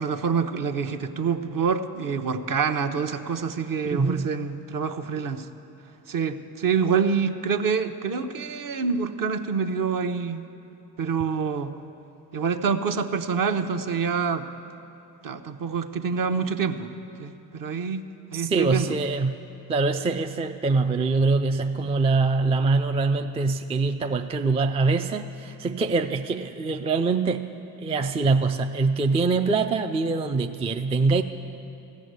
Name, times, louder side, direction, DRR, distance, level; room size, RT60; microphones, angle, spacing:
voice 1, 0.0-5.5 6.1-10.4 11.0-11.7 12.3-14.4 15.2-16.9 17.2-18.0 18.3-18.9, right 6 dB, 40° right, 8 dB, 0.8 m, -26 dB
voice 2, 3.9-4.3 18.3-19.4 19.7-27.5 27.8-31.2, right 3 dB, 15° right, 7 dB, 0.3 m, -24 dB
15.0 x 6.2 x 8.0 m, 2.9 s
hypercardioid pair, 45°, 50 cm